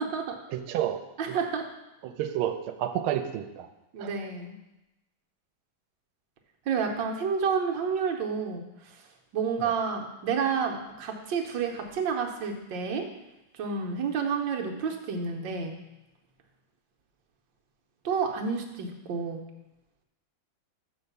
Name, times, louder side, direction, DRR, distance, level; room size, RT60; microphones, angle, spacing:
voice 1, 0.0-0.4 1.2-1.7 3.9-4.5 6.7-9.0 9.3-13.1 13.5-15.8 18.0-19.4, right 5 dB, 65° right, 2 dB, 1.6 m, -30 dB
voice 2, 0.5-1.0 1.3-1.4 2.0-3.7 4.0-4.1 9.6-9.7, right 11 dB, 90° right, 9 dB, 1.5 m, -30 dB
6.4 x 5.5 x 6.8 m, 0.97 s
omnidirectional pair, 2.3 m